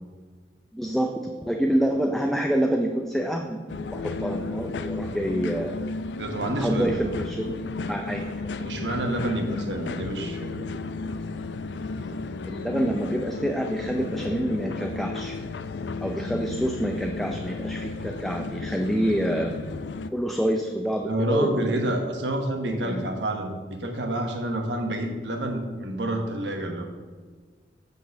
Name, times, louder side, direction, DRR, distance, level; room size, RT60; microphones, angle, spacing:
voice 1, 0.7-3.6 3.9-5.8 6.6-7.6 7.9-8.4 12.4-15.4 16.0-19.5 20.1-21.8 22.8-23.1, equal, ahead, 3 dB, 0.5 m, -27 dB
sound 1, 3.7-20.1, left 3 dB, 70° left, 0.4 m, -33 dB
voice 2, 6.2-7.0 8.6-10.8 21.0-26.8, right 1 dB, 75° right, 4 dB, 1.1 m, -28 dB
8.1 x 4.0 x 6.4 m, 1.5 s
head